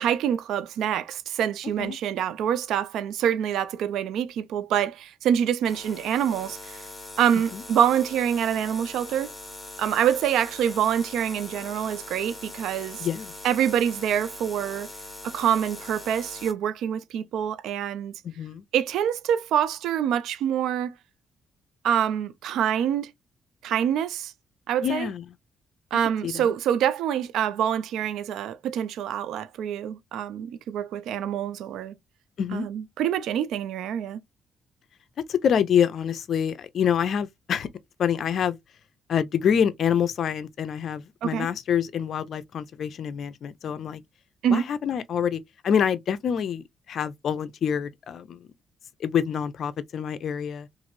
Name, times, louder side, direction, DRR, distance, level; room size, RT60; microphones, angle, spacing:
voice 1, 0.0-6.8 7.2-9.3 9.8-13.1 13.4-14.9 15.2-18.1 18.7-20.9 21.8-23.1 23.6-24.3 24.7-25.1 25.9-31.9 32.5-34.2 41.2-41.5 44.4-44.7, right 9 dB, 80° right, 0.3 m, -26 dB
sound 1, 5.6-16.5, left 2 dB, 15° left, 1.1 m, -41 dB
voice 2, 13.0-13.3 18.2-18.6 24.8-25.2 26.2-26.5 32.4-32.7 35.3-37.7 38.0-38.6 39.1-44.0 44.5-48.5 49.0-50.7, left 8 dB, 60° left, 0.5 m, -26 dB
3.0 x 2.5 x 2.5 m
cardioid pair, 90°, 0 cm